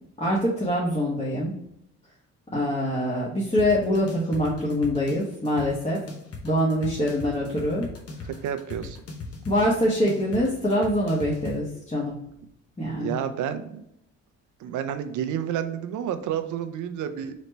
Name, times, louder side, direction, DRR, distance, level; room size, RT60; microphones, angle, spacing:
voice 1, 0.2-1.5 2.5-6.0 6.4-7.9 8.2-8.3 9.4-12.1 12.8-13.2, equal, 20° left, -6 dB, 1.2 m, -24 dB
sound 1, 3.6-11.6, left 3 dB, 50° left, 1.0 m, -39 dB
voice 2, 8.4-9.0 13.0-13.8 14.6-17.3, right 9 dB, 80° right, 9 dB, 0.6 m, -30 dB
4.0 x 3.1 x 3.2 m, 0.77 s
cardioid pair, 90°, 30 cm